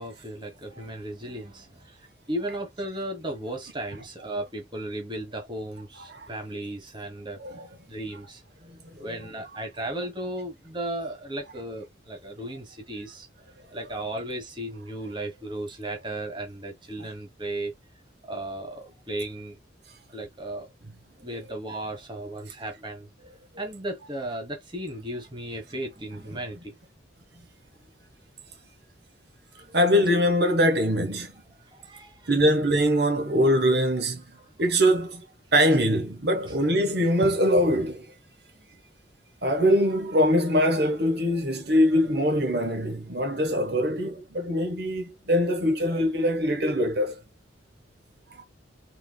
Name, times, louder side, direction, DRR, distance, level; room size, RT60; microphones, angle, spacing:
voice 1, 0.0-1.9 2.3-7.4 7.9-8.4 9.0-13.3 13.7-17.7 18.3-19.6 20.1-20.7 21.2-23.1 23.6-26.8 31.7-32.3 38.5-38.7, right 1 dB, 25° right, 1.3 m, -35 dB
voice 2, 29.5-31.3 32.3-34.3 34.6-35.2 35.5-38.0 39.4-47.2 48.4-48.5, equal, 55° right, 1.1 m, -23 dB
4.5 x 3.7 x 2.3 m
head